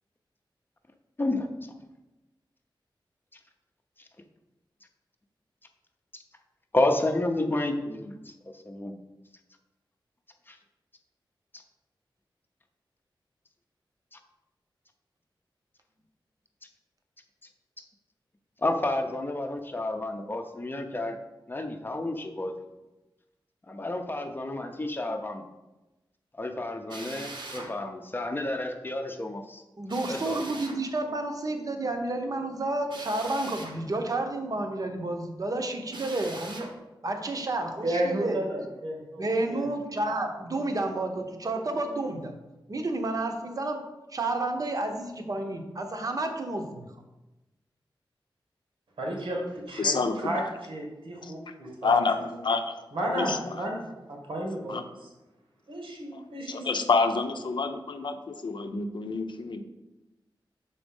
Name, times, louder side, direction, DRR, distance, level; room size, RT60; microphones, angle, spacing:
voice 1, 1.2-1.7 3.3-3.4 4.0-4.1 6.7-8.9 10.5-10.6 14.1-14.2 18.6-21.2 21.5-22.7 23.7-25.4 26.3-29.6 30.1-30.6, left 2 dB, 25° left, 5 dB, 0.6 m, -30 dB
Drill, 26.9-27.7 29.9-30.8 32.9-33.8 35.9-36.7, right 2 dB, 65° right, 1.1 m, -41 dB
voice 2, 29.8-36.7 37.0-38.4 39.2-42.3 42.7-43.8 44.1-46.9, right 2 dB, 45° right, 5 dB, 0.8 m, -30 dB
voice 3, 37.8-39.7 49.0-52.0 52.9-55.1 55.7-56.8, right 1 dB, 90° right, -1 dB, 1.8 m, -33 dB
voice 4, 49.8-50.3 51.2-51.3 51.8-52.7 53.1-53.6 54.7-54.8 56.1-56.2 56.5-59.6, left 4 dB, 65° left, 7 dB, 0.6 m, -28 dB
6.0 x 4.2 x 5.3 m, 1.0 s
wide cardioid pair, 115°, 9 cm